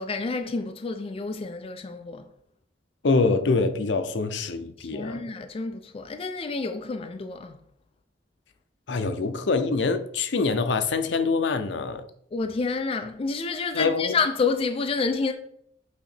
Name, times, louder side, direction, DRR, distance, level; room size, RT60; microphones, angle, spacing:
voice 1, 0.0-2.3 4.8-7.6 12.3-15.3, left 4 dB, 30° left, 0.4 m, -29 dB
voice 2, 3.0-5.2 8.9-12.1 13.7-14.2, left 4 dB, 70° left, 0.6 m, -25 dB
8.1 x 2.8 x 4.3 m
head